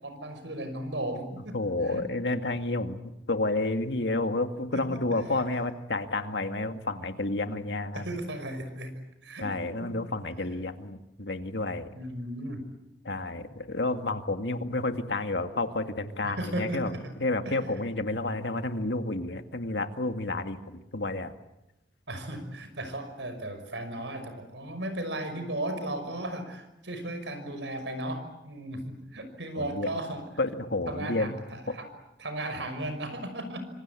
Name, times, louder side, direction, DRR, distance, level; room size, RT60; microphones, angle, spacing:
voice 1, 0.0-1.6 1.9-2.0 4.7-4.8 7.9-9.4 9.8-9.9 11.9-12.6 16.2-17.0 17.5-17.6 22.1-30.2 30.9-31.9 32.2-33.6, right 1 dB, 85° right, 9 dB, 5.9 m, -35 dB
voice 2, 1.5-8.1 9.4-11.9 13.0-16.9 17.2-21.3 29.6-29.9 30.4-31.3, left 2 dB, 70° left, 7 dB, 2.1 m, -30 dB
25.5 x 25.5 x 8.4 m, 0.90 s
head